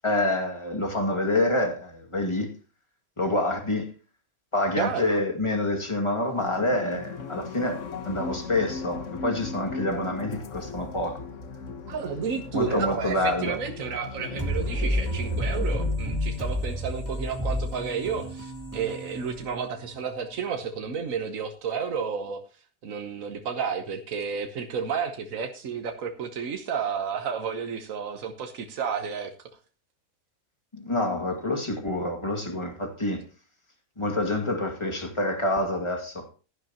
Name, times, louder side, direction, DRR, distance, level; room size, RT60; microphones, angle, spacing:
voice 1, 0.0-2.5 3.2-3.9 4.5-11.2 12.5-13.6 30.7-33.2 34.0-36.3, left 1 dB, 20° left, 2.2 m, -27 dB
voice 2, 4.8-5.2 11.9-22.4 22.8-29.3, right 6 dB, 80° right, 1.5 m, -31 dB
sound 1, 6.4-16.0, left 4 dB, 65° left, 1.5 m, -38 dB
sound 2, 14.4-20.0, equal, 15° right, 3.4 m, -30 dB
16.5 x 11.5 x 2.9 m
omnidirectional pair, 1.4 m